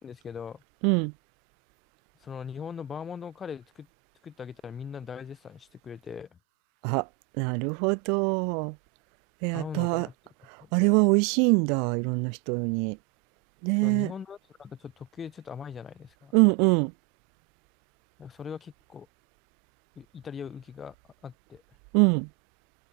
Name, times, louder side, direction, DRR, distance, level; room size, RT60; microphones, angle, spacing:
voice 1, 0.0-0.6 2.2-3.9 4.2-6.4 9.5-10.1 10.6-10.7 13.8-16.3 18.2-19.1 20.0-20.9 21.2-21.6, left 7 dB, 15° left, 0.6 m, -40 dB
voice 2, 7.4-8.7 9.4-10.1 10.7-13.0 13.6-14.1 16.3-16.9 21.9-22.3, right 36 dB, 40° right, 0.3 m, -24 dB
figure-of-eight pair, 110°, 0 cm